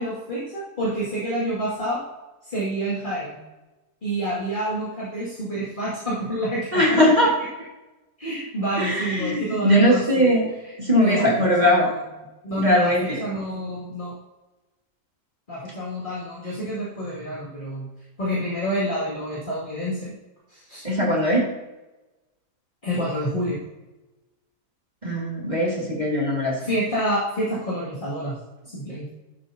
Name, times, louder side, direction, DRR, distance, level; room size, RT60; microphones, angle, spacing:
voice 1, 0.0-2.0 2.4-3.4 4.0-7.0 8.2-10.3 10.6-10.7 11.0-12.0 12.4-14.1 15.5-17.9 18.2-20.1 20.5-20.8 22.8-23.6 26.6-28.4 28.7-29.1, right 1 dB, 30° left, -7 dB, 2.5 m, -28 dB
voice 2, 6.7-7.3 8.8-10.5 10.8-11.9 12.6-13.2 20.8-21.5 25.0-26.6, equal, 25° right, -3 dB, 2.0 m, -20 dB
11.5 x 8.2 x 2.8 m, 1.1 s
omnidirectional pair, 1.7 m